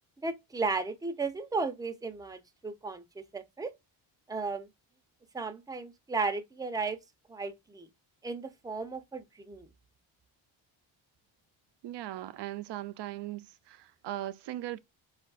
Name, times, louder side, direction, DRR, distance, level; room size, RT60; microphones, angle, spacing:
voice 1, 0.2-3.7 4.3-4.7 5.3-7.0 7.3-7.9 8.2-9.7, right 4 dB, 10° right, 0.6 m, -35 dB
voice 2, 11.8-14.8, right 14 dB, 60° right, 0.5 m, -39 dB
4.4 x 2.4 x 2.3 m
cardioid pair, 70°, 48 cm